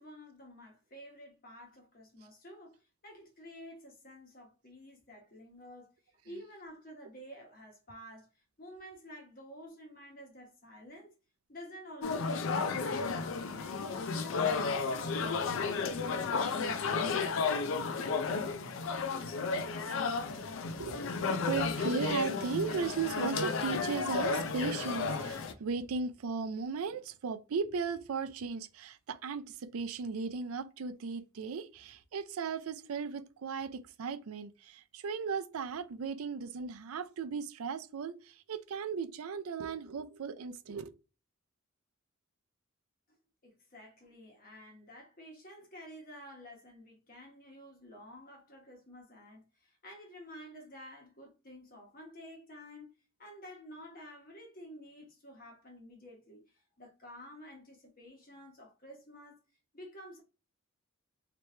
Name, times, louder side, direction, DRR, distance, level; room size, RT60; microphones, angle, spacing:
voice 1, 0.0-5.9 6.2-8.3 8.6-11.1 11.5-13.9 14.2-18.0 43.1-43.2 43.4-59.4 59.7-60.2, equal, 40° left, 1.2 m, -51 dB
sound 1, 12.0-25.5, left 4 dB, 65° left, 0.4 m, -33 dB
voice 2, 20.8-40.9, right 5 dB, 85° right, 0.4 m, -37 dB
3.1 x 2.9 x 3.2 m
head